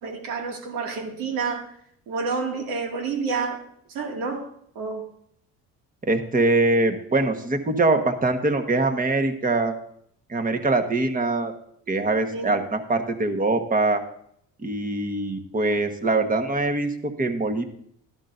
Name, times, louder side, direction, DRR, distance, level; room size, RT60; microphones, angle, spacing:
voice 1, 0.0-1.7 2.1-3.7 3.9-4.5 4.8-5.1 12.3-12.5, right 4 dB, 80° right, 2 dB, 2.3 m, -29 dB
voice 2, 6.0-9.8 10.3-11.5 11.9-14.0 14.6-17.6, right 2 dB, 25° right, 5 dB, 1.4 m, -23 dB
12.5 x 11.5 x 2.6 m, 0.68 s
cardioid pair, 95°, 35 cm